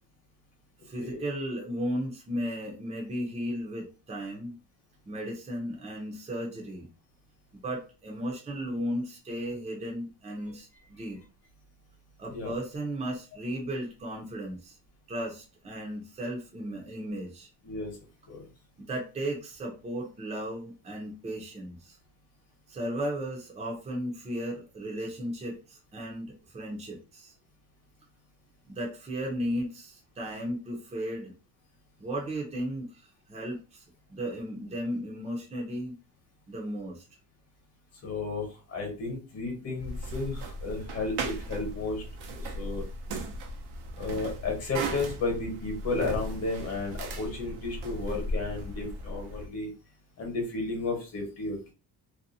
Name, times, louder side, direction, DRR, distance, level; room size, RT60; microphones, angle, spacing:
voice 1, 0.9-4.5 5.1-6.9 7.5-11.2 12.2-14.8 15.1-17.5 18.9-22.0 22.7-27.3 28.7-31.3 32.0-33.8 34.1-36.0 36.5-37.0, equal, 15° right, -1 dB, 0.6 m, -35 dB
voice 2, 38.0-42.0 42.3-42.8 44.0-49.7 50.2-51.7, left 3 dB, 40° left, 2 dB, 1.1 m, -33 dB
sound 1, 39.8-49.5, right 1 dB, 90° right, 0.7 m, -37 dB
2.6 x 2.2 x 2.6 m, 0.33 s
cardioid pair, 150°, 39 cm